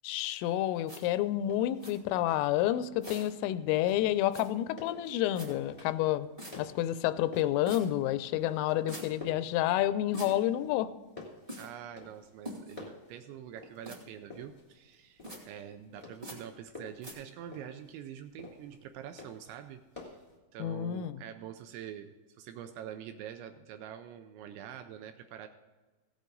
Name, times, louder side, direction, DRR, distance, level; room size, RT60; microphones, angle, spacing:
voice 1, 0.0-6.3 6.6-10.9 20.6-21.2, left 13 dB, 85° left, 14 dB, 3.2 m, -29 dB
sound 1, 0.9-1.0 1.8-1.9 3.0-3.3 4.3-4.4 5.3-5.5 6.4-6.5 7.6-7.8 8.9-9.1 10.1-10.3 11.5-11.7 12.4-12.8 13.8-14.0 15.2-15.4 16.2-16.4 17.0-17.1, equal, 15° right, 1.3 m, -43 dB
sound 2, 1.2-20.4, left 2 dB, 15° left, 1.4 m, -51 dB
voice 2, 11.6-20.2 20.5-25.5, right 10 dB, 80° right, 7 dB, 2.7 m, -45 dB
16.5 x 8.3 x 3.9 m, 1.2 s
omnidirectional pair, 5.7 m